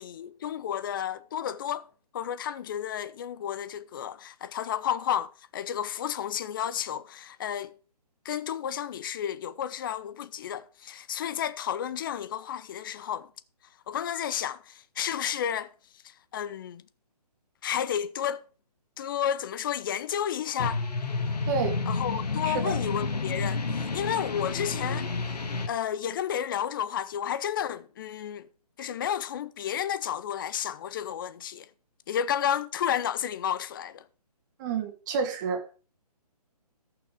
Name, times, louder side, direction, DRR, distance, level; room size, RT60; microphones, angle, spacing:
voice 1, 0.0-7.7 8.2-13.3 13.9-15.7 16.0-16.8 17.6-18.4 19.0-20.8 21.9-25.1 25.7-28.5 28.8-31.7 32.1-34.0, left 9 dB, 30° left, 0.6 m, -32 dB
sound 1, 20.6-25.7, left 4 dB, 75° left, 1.9 m, -30 dB
voice 2, 21.5-21.8 22.4-22.8 34.6-35.6, right 6 dB, 30° right, 1.7 m, -29 dB
14.0 x 5.9 x 5.1 m
figure-of-eight pair, 145°, 21 cm